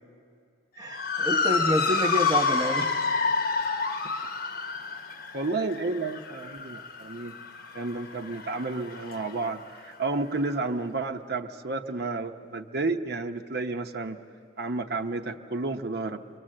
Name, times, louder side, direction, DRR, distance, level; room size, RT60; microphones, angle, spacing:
Motor vehicle (road) / Siren, 0.8-9.4, left 4 dB, 55° left, 1.0 m, -29 dB
voice 1, 0.8-3.0, equal, 20° right, 2 dB, 0.8 m, -28 dB
voice 2, 5.3-7.4 7.7-14.2 14.6-16.2, right 3 dB, 60° right, 5 dB, 0.8 m, -31 dB
28.0 x 23.5 x 7.6 m, 2.4 s
head